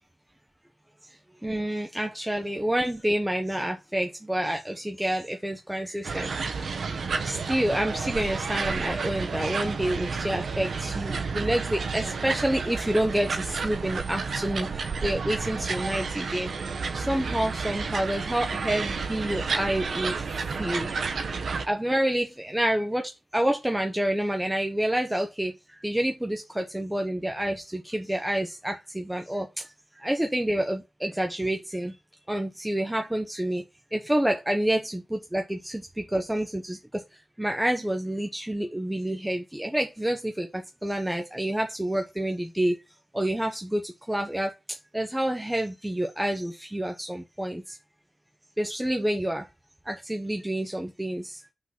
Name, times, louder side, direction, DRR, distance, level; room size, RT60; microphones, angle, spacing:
voice 1, 1.4-6.7 7.2-16.5 16.9-20.3 20.6-20.9 21.6-25.5 25.8-29.6 30.0-31.9 32.3-33.6 33.9-37.0 37.4-42.8 43.1-44.5 44.9-47.8 48.6-49.4 49.9-51.4, right 1 dB, 10° right, 0.8 m, -28 dB
sound 1, 6.0-21.7, right 4 dB, 85° right, 0.9 m, -31 dB
6.1 x 3.9 x 5.7 m
wide cardioid pair, 120°, 0 cm